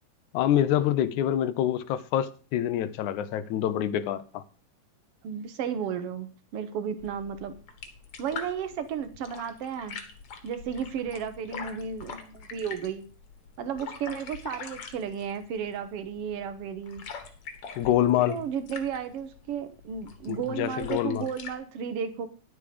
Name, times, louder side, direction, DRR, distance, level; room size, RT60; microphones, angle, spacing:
voice 1, 0.3-4.4 17.8-18.4 20.3-21.3, left 11 dB, 80° left, 2.1 m, -26 dB
voice 2, 5.2-7.5 8.2-10.0 10.4-13.1 13.6-17.0 18.3-22.3, right 7 dB, 60° right, 1.8 m, -33 dB
sound 1, 7.0-21.6, left 6 dB, 55° left, 2.2 m, -44 dB
11.0 x 8.6 x 5.1 m
omnidirectional pair, 3.5 m